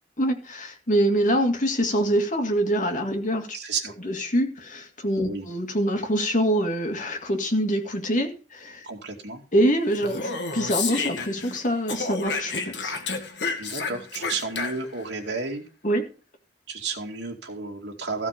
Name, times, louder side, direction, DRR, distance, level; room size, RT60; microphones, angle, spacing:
voice 1, 0.2-3.6 4.0-8.9 9.5-13.1 15.8-16.0, equal, 45° left, 2.1 m, -25 dB
voice 2, 3.5-3.9 5.2-5.5 8.8-9.4 13.6-15.6 16.7-18.3, right 4 dB, 70° right, 2.4 m, -32 dB
Speech, 9.9-11.6 11.9-15.0, left 4 dB, 70° left, 2.0 m, -31 dB
14.5 x 6.2 x 5.2 m
head